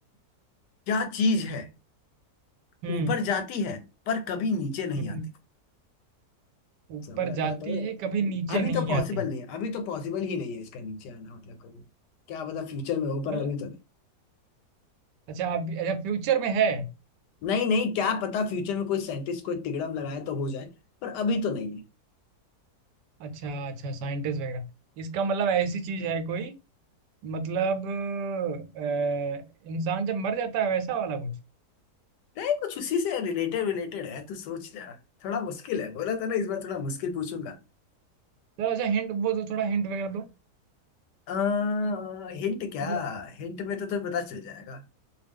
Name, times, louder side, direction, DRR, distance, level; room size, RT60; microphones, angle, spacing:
voice 1, 0.9-1.7 2.9-5.2 7.1-7.9 8.5-11.8 12.3-13.7 17.4-20.7 21.0-21.8 32.4-35.0 35.2-37.6 41.3-44.8, left 5 dB, 90° left, 1.2 m, -30 dB
voice 2, 2.8-3.1 5.0-5.2 6.9-9.2 13.3-13.5 15.3-16.9 23.2-24.7 25.0-26.5 27.2-31.4 38.6-40.3 42.8-43.0, right 5 dB, 85° right, 1.2 m, -29 dB
2.6 x 2.3 x 3.4 m
omnidirectional pair, 1.8 m